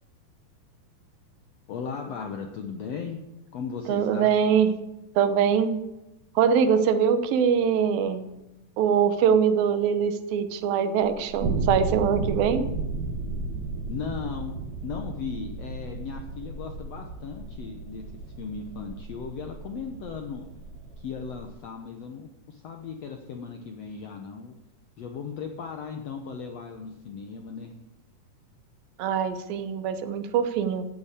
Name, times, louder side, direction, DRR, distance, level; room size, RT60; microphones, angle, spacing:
voice 1, 1.7-3.2 3.5-4.3 13.9-14.5 14.8-18.0 18.4-20.5 21.0-24.5 25.0-27.7, left 6 dB, 65° left, 4 dB, 1.7 m, -37 dB
voice 2, 3.9-4.8 5.2-5.8 6.4-8.3 8.8-12.7 29.0-30.9, right 7 dB, 85° right, 10 dB, 2.8 m, -23 dB
sound 1, 11.0-21.5, right 3 dB, 55° right, 2.7 m, -34 dB
13.5 x 8.7 x 8.5 m, 0.94 s
omnidirectional pair, 4.0 m